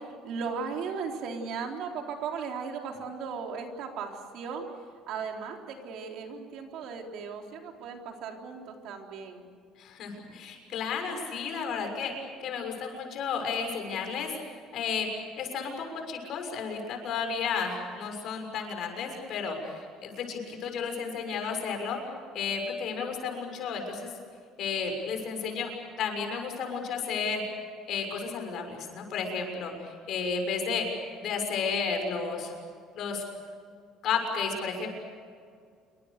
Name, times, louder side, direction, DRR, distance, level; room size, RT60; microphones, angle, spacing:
voice 1, 0.0-4.6 5.1-9.4, right 5 dB, 55° right, 2 dB, 3.7 m, -37 dB
voice 2, 9.8-12.1 12.4-14.4 14.7-15.1 15.4-15.7 16.1-22.0 22.3-24.1 24.6-25.7 26.0-27.4 27.9-30.9 31.2-32.5 32.9-33.2 34.0-34.9, left 5 dB, 45° left, 4 dB, 6.4 m, -32 dB
28.0 x 25.0 x 6.7 m, 2.1 s
cardioid pair, 170°, 0 cm